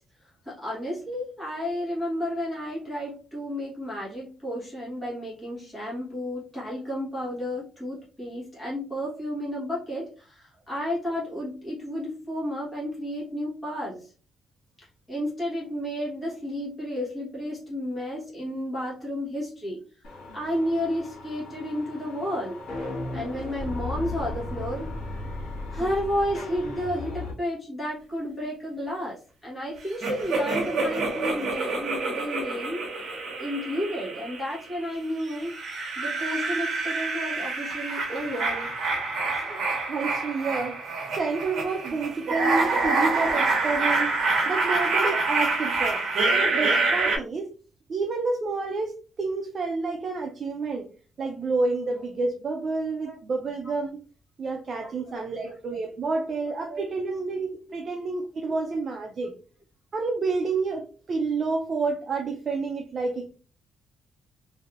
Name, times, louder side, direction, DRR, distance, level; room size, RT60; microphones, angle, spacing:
voice 1, 0.2-14.1 14.8-19.8 20.3-22.6 23.1-24.9 25.7-32.9 33.4-35.5 36.0-38.7 53.0-53.2 54.8-54.9 55.5-55.6 56.7-56.8 57.7-57.8 58.5-58.6, equal, 15° left, -7 dB, 1.2 m, -32 dB
sound 1, 20.0-27.3, left 2 dB, 90° left, 1.3 m, -36 dB
sound 2, 30.0-34.7 35.3-47.2, right 3 dB, 50° right, 1.0 m, -27 dB
voice 2, 39.9-40.8 41.1-44.1 44.5-46.0 46.3-47.5 47.9-50.9 51.2-53.9 54.4-59.3 59.9-63.3, right 3 dB, 35° right, 2 dB, 0.4 m, -29 dB
3.2 x 2.6 x 2.4 m, 0.38 s
cardioid pair, 175°, 0 cm